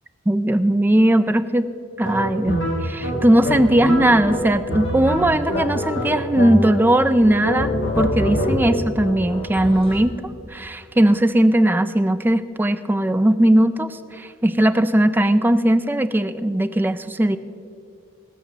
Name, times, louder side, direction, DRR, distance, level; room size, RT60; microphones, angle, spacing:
voice 1, 0.3-1.7 2.0-7.7 8.0-10.1 10.5-17.4, right 1 dB, 10° right, 11 dB, 0.4 m, -18 dB
sound 1, 2.0-7.0 7.4-8.9, equal, 65° left, 1.6 m, -25 dB
sound 2, 3.0-10.0, left 1 dB, 30° left, 1.3 m, -34 dB
18.0 x 6.2 x 6.8 m, 2.5 s
head